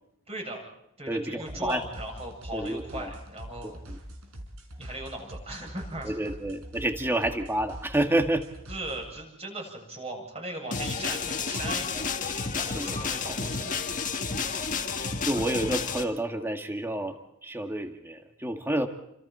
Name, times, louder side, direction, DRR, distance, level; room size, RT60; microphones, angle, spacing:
voice 1, 0.3-0.6 1.0-3.8 4.8-6.4 8.7-12.1 12.6-13.7, right 1 dB, 30° right, 1 dB, 7.9 m, -38 dB
voice 2, 1.1-1.8 2.5-3.1 3.6-4.0 6.0-8.5 12.7-12.9 15.2-18.9, right 1 dB, 10° right, 5 dB, 1.9 m, -29 dB
sound 1, 1.5-9.1, equal, 75° right, 5.0 m, -43 dB
sound 2, 10.7-16.0, left 5 dB, 35° left, 1.7 m, -31 dB
29.5 x 26.0 x 4.4 m, 0.80 s
head